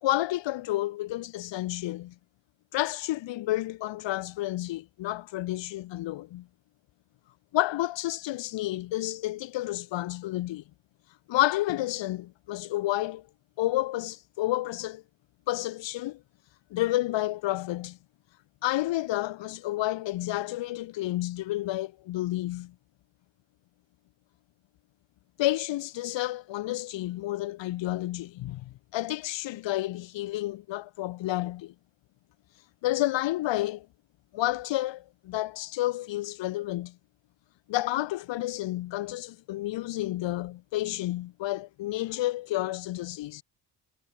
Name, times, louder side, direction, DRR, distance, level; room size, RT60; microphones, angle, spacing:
voice 1, 0.0-2.1 2.7-6.5 7.5-10.6 11.3-13.3 13.6-15.0 15.5-16.2 16.7-18.0 18.6-22.7 25.4-31.7 32.8-33.9 34.3-37.0 37.7-43.4, left 16 dB, 80° left, 4.5 m, -30 dB
supercardioid pair, 75°, 43 cm